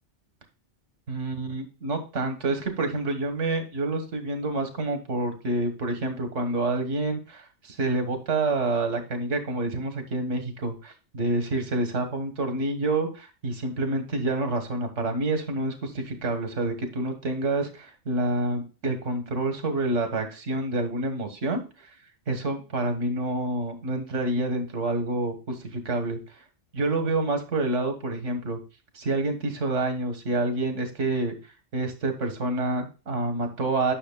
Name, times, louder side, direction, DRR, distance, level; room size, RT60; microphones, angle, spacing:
voice 1, 1.1-21.9 22.3-26.2 26.7-28.6 28.9-31.3 31.7-33.9, right 2 dB, 90° right, 6 dB, 1.7 m, -28 dB
9.9 x 6.2 x 2.2 m, 0.32 s
omnidirectional pair, 1.2 m